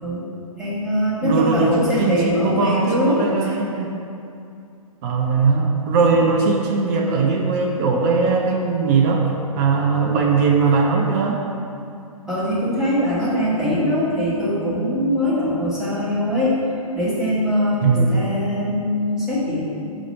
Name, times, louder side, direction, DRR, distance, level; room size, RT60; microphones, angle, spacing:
voice 1, 0.6-3.2 6.0-6.2 12.3-16.5 16.9-19.6, equal, 5° right, -9 dB, 1.5 m, -22 dB
voice 2, 1.2-3.9 5.0-9.3 9.6-11.4 13.2-13.4 17.8-18.1, right 4 dB, 30° right, -1 dB, 0.6 m, -19 dB
5.0 x 5.0 x 5.4 m, 2.6 s
figure-of-eight pair, 120°, 19 cm